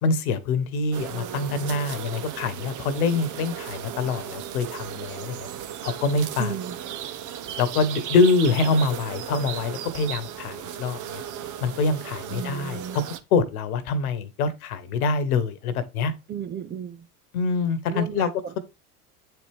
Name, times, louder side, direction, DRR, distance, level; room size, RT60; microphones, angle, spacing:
voice 1, 0.0-5.5 5.8-6.5 7.6-11.2 11.6-13.0 13.3-16.1 17.3-18.3, left 4 dB, 65° left, 1.4 m, -25 dB
sound 1, 0.9-13.2, right 10 dB, 40° right, 1.0 m, -36 dB
voice 2, 6.4-6.8 12.3-13.0 16.3-17.1 17.9-18.6, right 8 dB, 25° right, 0.5 m, -34 dB
8.8 x 4.6 x 3.5 m
figure-of-eight pair, 75°, 46 cm